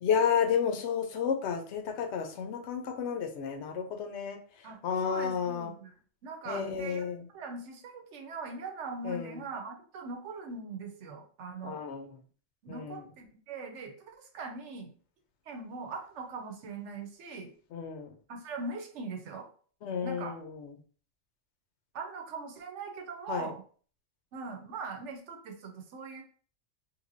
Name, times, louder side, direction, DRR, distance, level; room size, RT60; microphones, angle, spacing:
voice 1, 0.0-4.4 4.8-5.7 6.5-7.2 9.0-9.3 11.6-12.1 12.7-13.0 17.7-18.1 19.8-20.7 23.3-23.5, left 7 dB, 70° left, 6 dB, 0.8 m, -31 dB
voice 2, 4.6-5.9 6.2-7.1 7.3-11.8 12.6-14.9 15.5-17.5 18.3-19.5 20.0-20.3 21.9-23.6 24.3-26.2, right 4 dB, 75° right, 4 dB, 1.0 m, -41 dB
3.2 x 2.9 x 2.5 m, 0.43 s
omnidirectional pair, 1.3 m